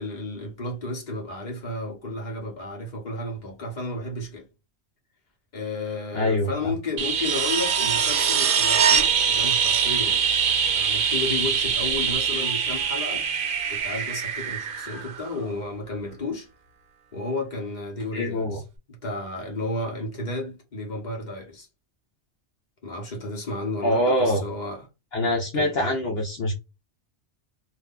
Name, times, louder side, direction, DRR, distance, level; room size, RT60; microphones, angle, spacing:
voice 1, 0.0-4.5 5.5-10.2 10.7-13.2 13.7-16.5 17.1-18.6 18.9-21.7 22.8-24.9 25.5-25.7, left 2 dB, 40° left, 1.3 m, -32 dB
voice 2, 6.1-6.5 18.1-18.6 23.8-24.4 25.1-26.5, left 1 dB, 65° left, 1.0 m, -24 dB
sound 1, 7.0-15.7 18.0-18.1, right 7 dB, 55° right, 0.8 m, -23 dB
3.1 x 2.5 x 3.7 m
omnidirectional pair, 1.1 m